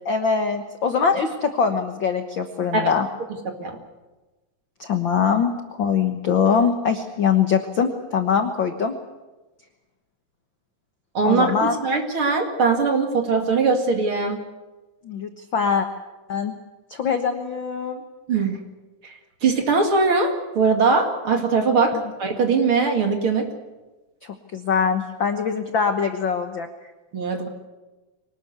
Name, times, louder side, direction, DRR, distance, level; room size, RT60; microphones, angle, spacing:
voice 1, 0.0-3.1 4.8-8.9 11.2-11.8 15.0-15.9 16.3-16.5 16.9-18.0 24.2-26.7, left 6 dB, 60° left, 6 dB, 1.3 m, -22 dB
voice 2, 3.4-3.8 11.1-14.4 18.3-18.6 19.0-19.1 19.4-23.5 27.1-27.5, right 4 dB, 40° right, 4 dB, 2.7 m, -21 dB
24.5 x 19.0 x 8.1 m, 1.2 s
omnidirectional pair, 3.8 m